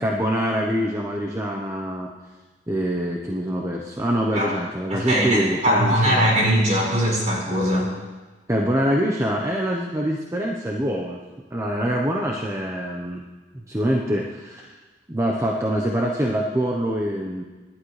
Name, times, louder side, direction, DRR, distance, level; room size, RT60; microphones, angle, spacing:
voice 1, 0.0-2.1 2.7-6.3 8.5-11.2 11.5-13.2 13.5-14.8 15.1-17.4, equal, 15° right, -1 dB, 1.0 m, -25 dB
voice 2, 4.9-7.9, equal, 40° right, -5 dB, 5.4 m, -21 dB
27.0 x 11.5 x 3.3 m, 1.3 s
head